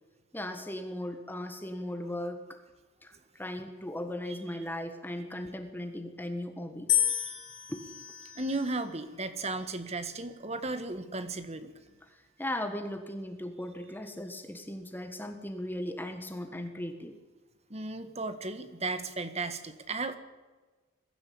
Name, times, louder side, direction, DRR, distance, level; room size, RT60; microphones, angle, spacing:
voice 1, 0.3-2.6 3.0-6.9 7.7-7.9 12.4-17.2, left 1 dB, 10° left, 7 dB, 1.6 m, -37 dB
sound 1, 6.9-9.1 9.9-10.4, left 12 dB, 60° left, 3.2 m, -32 dB
voice 2, 8.3-11.7 17.7-20.2, right 3 dB, 30° right, 10 dB, 1.6 m, -35 dB
22.0 x 15.0 x 8.7 m, 1.3 s
head